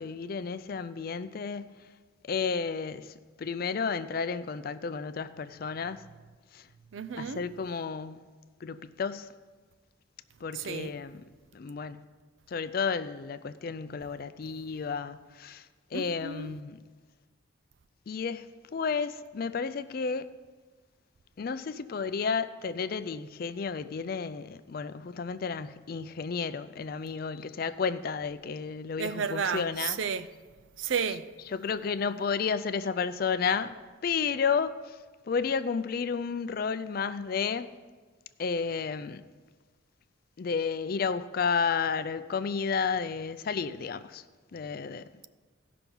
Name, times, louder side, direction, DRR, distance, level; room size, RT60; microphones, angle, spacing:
voice 1, 0.0-1.7 2.3-6.0 6.5-6.6 7.2-8.2 8.6-9.3 10.4-11.2 11.5-12.0 12.5-15.6 15.9-16.8 18.1-18.5 18.7-20.3 21.4-30.0 31.5-33.8 34.0-35.0 35.3-37.7 38.4-39.2 40.4-44.2 44.5-45.0, left 5 dB, 45° left, 0.4 m, -32 dB
voice 2, 6.9-7.4 10.5-11.0 15.9-16.5 29.0-30.3 30.8-31.3, right 6 dB, 70° right, 0.5 m, -32 dB
15.5 x 5.9 x 5.3 m
head